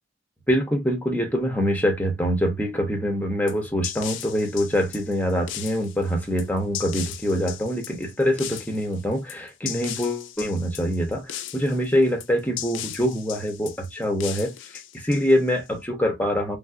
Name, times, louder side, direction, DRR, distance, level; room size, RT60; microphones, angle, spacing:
voice 1, 0.5-14.5 14.9-16.6, equal, 10° left, 0.7 m, -24 dB
sound 1, 3.5-15.7, left 11 dB, 60° left, 0.4 m, -37 dB
3.3 x 2.5 x 2.5 m
head